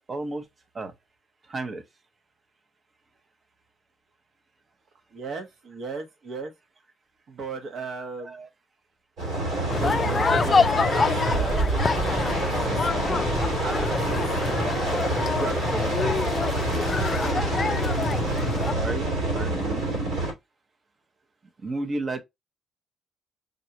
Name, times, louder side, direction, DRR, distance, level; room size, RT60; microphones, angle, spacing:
voice 1, 0.1-0.4 0.7-0.9 1.5-1.8 8.2-8.5 18.6-19.9 21.6-22.2, right 2 dB, 35° right, 0.8 m, -32 dB
voice 2, 5.1-6.5 7.3-8.3 9.7-11.6 12.6-13.9 14.1-14.7 15.2-16.3, right 3 dB, 65° right, 1.0 m, -36 dB
sound 1, 9.2-20.3, right 2 dB, 85° right, 2.7 m, -27 dB
sound 2, 9.7-18.7, left 4 dB, 35° left, 0.3 m, -26 dB
5.2 x 2.3 x 2.8 m
cardioid pair, 90°, 0 cm